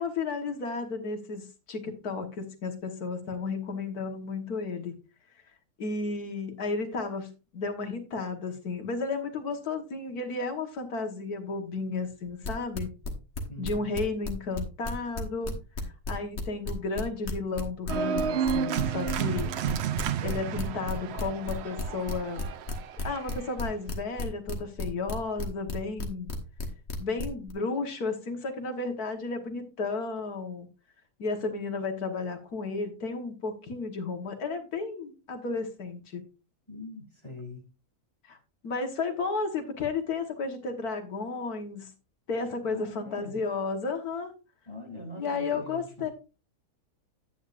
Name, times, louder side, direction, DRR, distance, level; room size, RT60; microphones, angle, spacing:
voice 1, 0.0-4.9 5.8-12.9 13.6-15.5 16.1-19.5 20.2-22.5 23.0-26.3 27.0-30.7 31.2-36.2 38.3-38.4 38.6-41.9 42.3-44.3 45.2-46.1, left 4 dB, 75° left, 1.9 m, -33 dB
sound 1, 12.3-14.6 14.8-27.5, left 3 dB, 45° left, 1.6 m, -33 dB
voice 2, 13.5-13.9 36.7-37.7 42.6-43.4 44.7-46.1, left 2 dB, 20° left, 2.6 m, -43 dB
Organ, 17.9-23.5, right 8 dB, 70° right, 0.6 m, -31 dB
9.8 x 8.9 x 2.5 m
omnidirectional pair, 1.6 m